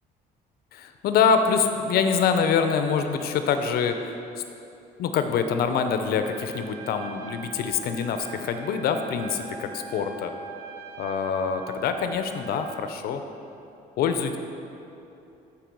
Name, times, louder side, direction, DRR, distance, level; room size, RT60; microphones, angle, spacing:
voice 1, 0.7-4.0 5.0-10.3 11.0-13.2 14.0-14.4, left 6 dB, 65° left, 7 dB, 0.6 m, -25 dB
Trumpet, 6.2-12.9, right 6 dB, 70° right, 0.7 m, -42 dB
7.6 x 4.7 x 5.2 m, 2.8 s
cardioid pair, 110°, 17 cm